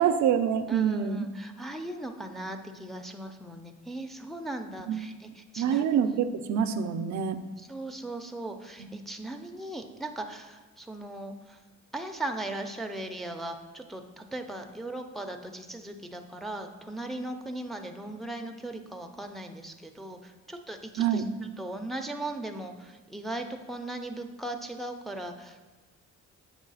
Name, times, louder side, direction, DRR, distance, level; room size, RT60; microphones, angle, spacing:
voice 1, 0.0-1.3 4.9-5.1 5.6-7.4 8.8-8.9 21.0-21.3, right 8 dB, 70° right, 8 dB, 0.5 m, -26 dB
voice 2, 0.7-5.8 7.6-11.6 11.9-21.2 21.6-25.7, right 1 dB, ahead, 4 dB, 0.5 m, -38 dB
7.3 x 3.2 x 5.5 m, 1.3 s
cardioid pair, 90°, 30 cm